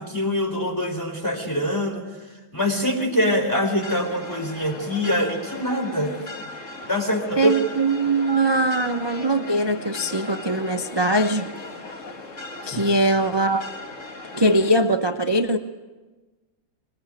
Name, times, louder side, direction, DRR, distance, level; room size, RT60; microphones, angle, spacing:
voice 1, 0.0-2.1 2.5-6.1 6.9-7.5 12.6-12.9, equal, 10° left, 3 dB, 4.2 m, -24 dB
sound 1, 3.8-14.7, left 2 dB, 35° left, 1.9 m, -38 dB
voice 2, 7.4-11.5 12.7-13.6 14.3-15.6, right 1 dB, 40° right, 6 dB, 0.3 m, -21 dB
25.5 x 21.0 x 9.1 m, 1.3 s
omnidirectional pair, 2.3 m